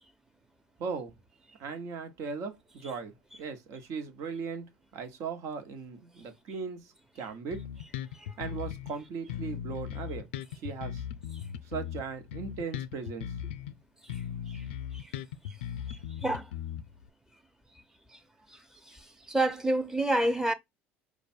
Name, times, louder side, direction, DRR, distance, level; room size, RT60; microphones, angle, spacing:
voice 1, 0.8-1.1 1.6-7.6 8.4-10.3 10.6-11.0 11.6-13.3, right 5 dB, 60° right, 1.1 m, -38 dB
Bass guitar, 7.5-9.0 9.3-13.8 14.1-17.1, left 9 dB, 80° left, 0.4 m, -38 dB
voice 2, 15.9-16.5 18.5-18.6 18.9-20.5, right 1 dB, 10° right, 0.9 m, -30 dB
5.0 x 2.4 x 4.4 m
hypercardioid pair, 70°, 6 cm